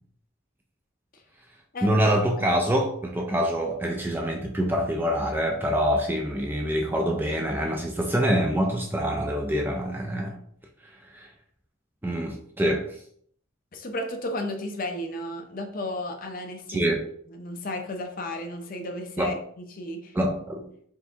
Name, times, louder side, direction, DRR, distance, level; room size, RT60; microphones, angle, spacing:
voice 1, 1.8-10.4 10.8-11.3 12.0-13.0 16.7-17.0 19.2-19.4 20.1-20.7, equal, 10° right, 2 dB, 0.3 m, -25 dB
voice 2, 13.7-16.8 17.3-20.2, left 1 dB, 40° left, 4 dB, 0.5 m, -33 dB
4.5 x 3.3 x 2.8 m, 0.64 s
head